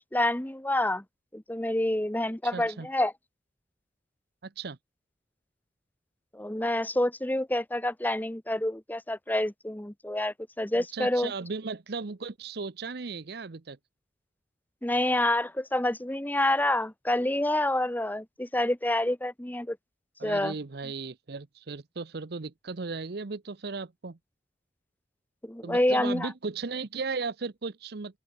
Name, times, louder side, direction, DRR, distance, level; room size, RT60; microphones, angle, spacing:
voice 1, 0.1-1.0 1.3-3.1 6.3-11.3 14.8-19.8 20.2-20.5 25.4-26.3, left 1 dB, 10° left, 1.0 m, -27 dB
voice 2, 2.4-2.9 4.4-4.8 10.8-13.8 20.2-24.2 25.6-28.2, right 4 dB, 60° right, 0.8 m, -36 dB
open air
head